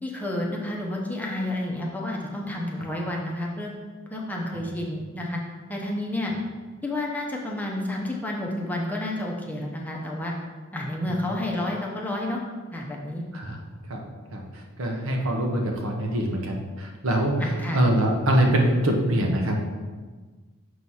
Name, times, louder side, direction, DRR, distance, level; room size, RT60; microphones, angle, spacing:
voice 1, 0.0-3.7 4.1-5.4 5.7-6.3 6.8-10.3 10.7-12.4 12.7-13.2 17.4-17.8, left 1 dB, 10° left, -2 dB, 0.7 m, -30 dB
voice 2, 14.8-19.6, right 1 dB, 70° right, 1 dB, 0.9 m, -24 dB
6.2 x 3.0 x 5.5 m, 1.4 s
head